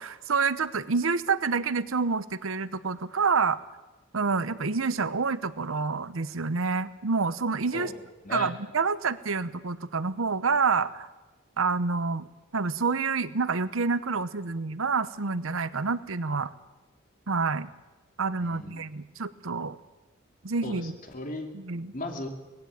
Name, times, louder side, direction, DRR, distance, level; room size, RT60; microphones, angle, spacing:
voice 1, 0.0-3.6 4.1-7.9 8.3-11.1 11.6-12.3 12.5-16.5 17.3-17.7 18.2-19.8 20.4-21.0 21.5-21.9, right 4 dB, 80° right, 15 dB, 0.9 m, -28 dB
voice 2, 18.4-18.8 20.6-21.5 21.9-22.3, left 1 dB, 45° left, 4 dB, 2.8 m, -36 dB
19.0 x 15.5 x 9.4 m, 1.1 s
head